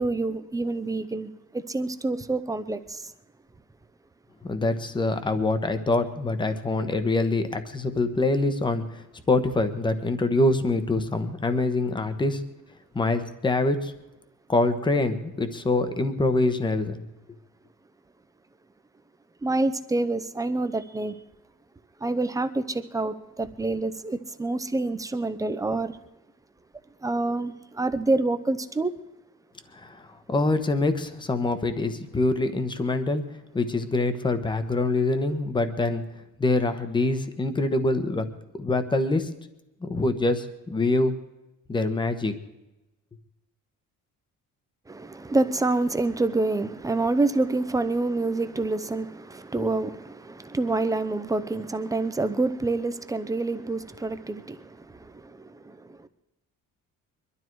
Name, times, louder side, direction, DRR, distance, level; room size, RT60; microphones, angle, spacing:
voice 1, 0.0-3.1 19.4-21.2 22.0-26.0 27.0-28.9 44.9-56.1, right 2 dB, 10° right, 0.7 m, -27 dB
voice 2, 4.4-9.0 9.3-12.4 12.9-13.9 14.5-17.0 29.7-30.0 30.3-33.3 33.5-36.0 36.4-38.2 38.6-39.3 39.8-41.2 41.7-42.3, left 2 dB, 15° left, 1.1 m, -25 dB
23.0 x 12.5 x 4.7 m
cardioid pair, 175°, 32 cm